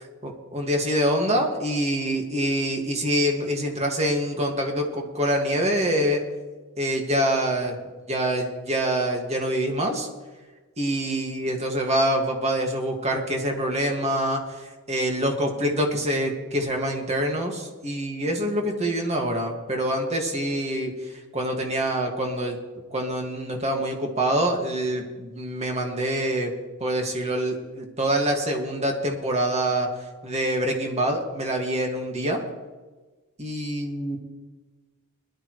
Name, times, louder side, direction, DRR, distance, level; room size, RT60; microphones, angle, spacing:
voice 1, 0.2-6.2 6.8-7.7 8.1-10.1 10.8-20.9 21.3-22.6 22.9-26.5 26.8-29.9 30.2-32.4 33.4-34.2, right 1 dB, 30° right, 2 dB, 2.1 m, -25 dB
20.0 x 12.0 x 3.2 m, 1.3 s
head